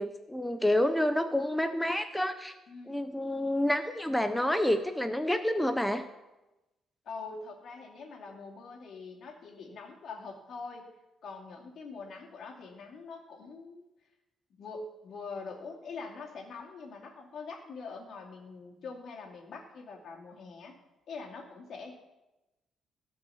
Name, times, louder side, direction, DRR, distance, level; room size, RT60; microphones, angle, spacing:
voice 1, 0.0-2.5 2.9-6.0, left 1 dB, 5° left, 9 dB, 0.5 m, -28 dB
voice 2, 2.7-3.0 7.1-10.9 11.2-13.8 14.6-20.7 21.1-22.0, left 4 dB, 50° left, -1 dB, 2.4 m, -44 dB
15.0 x 5.5 x 6.9 m, 1.0 s
cardioid pair, 175°, 0 cm